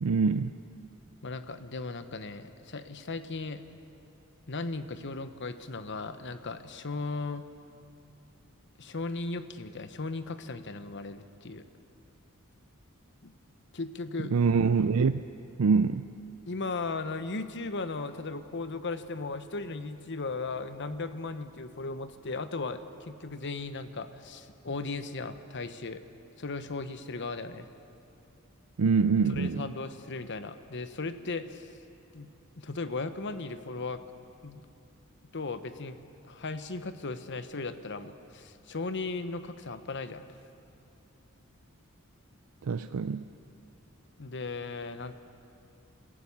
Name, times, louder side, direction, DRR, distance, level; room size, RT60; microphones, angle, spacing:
voice 1, 0.0-0.5 14.3-15.2 15.6-16.1 28.8-29.7 42.6-43.3, right 5 dB, 80° right, 11 dB, 0.5 m, -25 dB
voice 2, 1.2-3.6 4.5-7.4 8.8-11.6 13.2-13.3 13.7-14.3 16.5-26.0 26.4-27.7 29.3-31.7 32.1-34.0 34.4-34.6 35.3-36.0 36.2-40.3 44.2-45.2, left 3 dB, 55° left, 11 dB, 1.0 m, -37 dB
26.5 x 16.0 x 7.2 m, 2.6 s
head